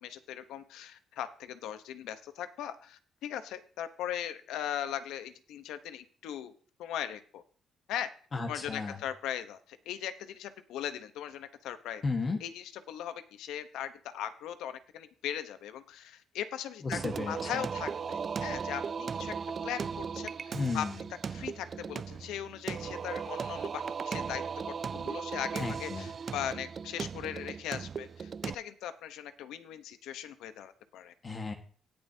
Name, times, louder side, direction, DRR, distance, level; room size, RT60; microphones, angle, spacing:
voice 1, 0.0-6.5 6.8-7.4 7.9-8.1 8.5-12.0 12.4-17.0 17.3-19.3 19.6-20.8 21.3-31.1, left 10 dB, 90° left, 11 dB, 0.9 m, -39 dB
voice 2, 8.3-9.0 12.0-12.4 16.8-17.7 20.5-21.0 25.6-26.1 31.2-31.5, left 3 dB, 40° left, 4 dB, 1.4 m, -34 dB
Singing, 16.9-28.5, right 6 dB, 45° right, 0.3 m, -37 dB
17.5 x 7.1 x 2.8 m, 0.43 s
cardioid pair, 90°, 0 cm